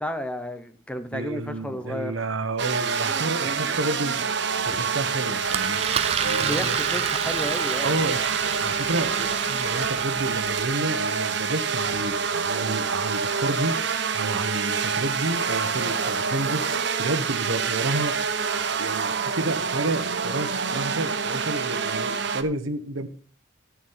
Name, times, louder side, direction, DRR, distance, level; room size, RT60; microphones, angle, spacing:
voice 1, 0.0-2.2 4.7-4.8 6.4-8.0, equal, 5° left, 0.9 m, -32 dB
voice 2, 1.1-4.3 4.6-6.8 7.8-13.8 14.1-18.2 18.8-23.1, right 2 dB, 80° right, 1.3 m, -30 dB
sound 1, 2.6-22.4, right 6 dB, 60° right, 1.0 m, -27 dB
Engine, 5.5-10.7, right 7 dB, 30° right, 0.5 m, -31 dB
13.0 x 6.4 x 5.8 m
head